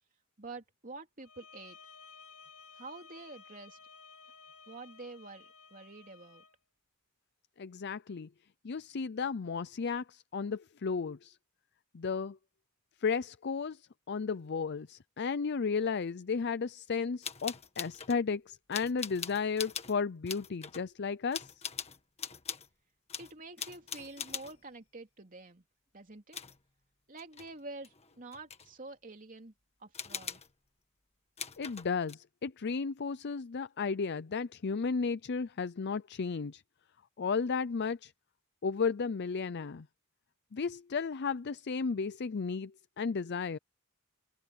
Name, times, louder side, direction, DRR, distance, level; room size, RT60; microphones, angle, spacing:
voice 1, 0.4-1.8 2.7-3.8 4.7-6.4 23.2-25.6 25.9-26.4 27.1-29.5 29.8-30.4, right 3 dB, 40° right, 3.1 m, -48 dB
sound 1, 1.2-6.6, left 5 dB, 90° left, 4.5 m, -55 dB
voice 2, 7.6-8.3 8.6-11.4 11.9-12.4 13.0-21.5 31.6-36.6 37.2-38.1 38.6-39.9 40.5-43.6, left 5 dB, 50° left, 0.5 m, -34 dB
sound 2, 17.2-18.2 18.7-20.0 20.3-20.9 21.3-22.7 23.1-24.6 26.3-26.6 27.2-27.5 27.8-28.7 29.9-30.5 31.4-32.1, left 7 dB, 30° left, 1.7 m, -41 dB
head